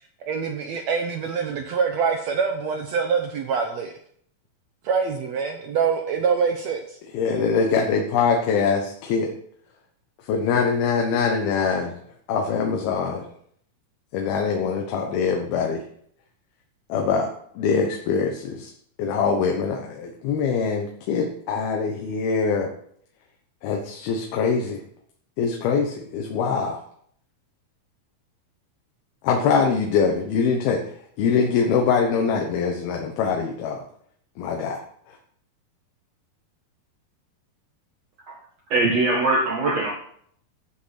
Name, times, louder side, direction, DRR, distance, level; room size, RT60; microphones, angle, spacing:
voice 1, 0.2-3.9 4.8-7.0, right 6 dB, 75° right, 4 dB, 1.6 m, -25 dB
voice 2, 7.1-9.3 10.3-11.9 12.3-13.2 14.1-15.8 16.9-17.3 17.6-18.7 19.0-22.7 23.6-24.8 25.4-26.8 29.2-30.8 31.2-33.8 34.4-34.8, left 5 dB, 85° left, 2 dB, 3.1 m, -23 dB
voice 3, 38.7-39.9, right 2 dB, 55° right, -2 dB, 2.4 m, -21 dB
12.5 x 7.8 x 5.9 m, 0.65 s
omnidirectional pair, 4.3 m